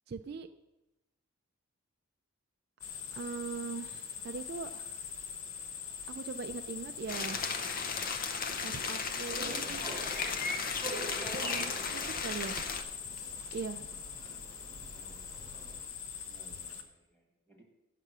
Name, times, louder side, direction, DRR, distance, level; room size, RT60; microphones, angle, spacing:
voice 1, 0.1-0.5 3.1-5.0 6.1-7.5 8.6-9.6 11.4-12.7 13.5-13.9, right 5 dB, 50° right, 8 dB, 0.3 m, -40 dB
sound 1, 2.8-16.8, left 7 dB, 85° left, 0.9 m, -43 dB
sound 2, 7.1-12.8, left 5 dB, 40° left, 0.6 m, -35 dB
sound 3, 9.3-15.9, right 1 dB, 25° right, 1.0 m, -46 dB
voice 2, 14.2-15.4 16.2-17.6, right 1 dB, 10° left, -1 dB, 1.7 m, -61 dB
8.2 x 6.0 x 6.7 m, 1.0 s
head